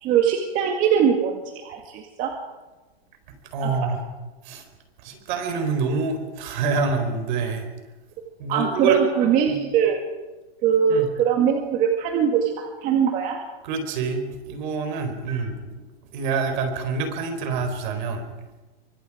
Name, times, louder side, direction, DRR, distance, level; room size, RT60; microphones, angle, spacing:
voice 1, 0.0-2.3 3.6-3.9 8.5-10.0 10.6-13.4 15.3-15.4, right 8 dB, 25° right, 3 dB, 1.8 m, -22 dB
voice 2, 3.5-4.0 4.4-4.6 5.0-7.7 8.4-9.0 9.5-9.6 10.9-11.1 13.6-15.7 16.1-18.3, right 4 dB, 50° right, 7 dB, 4.5 m, -26 dB
26.5 x 24.0 x 5.0 m, 1.2 s
supercardioid pair, 160°, 31 cm